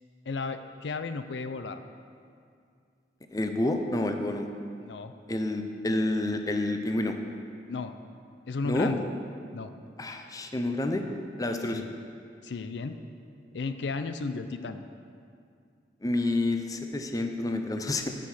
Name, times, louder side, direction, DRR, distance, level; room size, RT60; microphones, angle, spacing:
voice 1, 0.3-1.8 4.8-5.1 7.7-7.9 8.5-9.0 9.5-9.7 11.7-11.9 12.4-13.0 13.5-14.8, left 4 dB, 85° left, 9 dB, 0.5 m, -34 dB
voice 2, 3.3-4.5 5.3-7.1 8.7-8.9 10.0-11.0 11.4-11.8 16.0-18.1, left 2 dB, 20° left, 5 dB, 0.5 m, -29 dB
7.9 x 6.3 x 7.3 m, 2.3 s
head